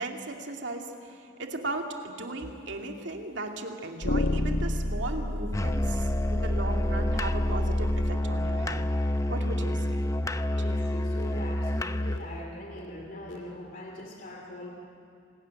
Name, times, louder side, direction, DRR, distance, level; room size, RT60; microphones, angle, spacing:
voice 1, 0.0-8.8 9.3-10.4, right 2 dB, 65° right, 2 dB, 2.4 m, -37 dB
sound 1, 2.4-2.5 4.0-8.1, left 1 dB, 85° left, 1.3 m, -30 dB
Musical instrument, 5.5-12.3, left 1 dB, 15° left, 0.6 m, -28 dB
voice 2, 9.4-9.8 10.3-14.7, left 1 dB, 45° left, 1 dB, 2.6 m, -42 dB
27.5 x 20.0 x 8.9 m, 2.5 s
head